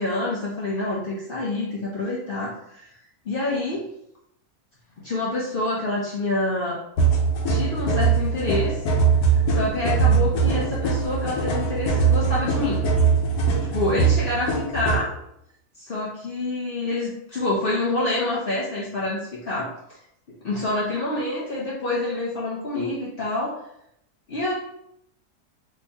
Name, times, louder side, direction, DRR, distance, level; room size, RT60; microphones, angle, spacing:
voice 1, 0.0-2.9 3.3-3.8 5.0-6.8 7.5-8.8 9.5-12.9 13.7-15.1 15.8-19.7 20.4-23.6 24.3-24.5, left 2 dB, 70° left, -5 dB, 0.5 m, -27 dB
sound 1, 7.0-15.0, right 5 dB, 85° left, 1.3 m, -21 dB
3.0 x 2.6 x 3.4 m, 0.77 s
omnidirectional pair, 1.7 m